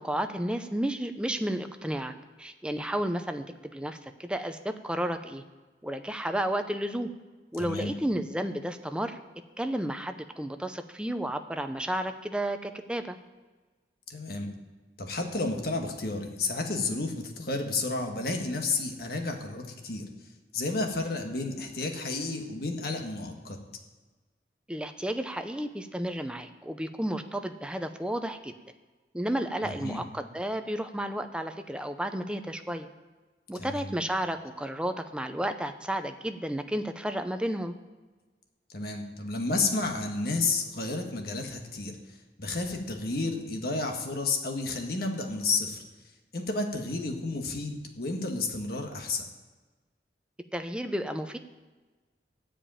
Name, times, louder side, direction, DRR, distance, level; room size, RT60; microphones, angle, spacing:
voice 1, 0.0-2.1 2.4-5.4 5.8-7.1 7.5-9.2 9.6-13.2 24.7-28.5 29.1-32.9 33.5-37.8 50.5-51.4, right 1 dB, 5° right, 7 dB, 0.6 m, -32 dB
voice 2, 7.6-7.9 14.1-14.5 15.0-20.1 20.5-23.6 29.6-30.0 33.5-33.9 38.7-45.8 46.3-49.2, left 3 dB, 55° left, 3 dB, 1.5 m, -31 dB
12.0 x 5.1 x 8.8 m, 1.3 s
head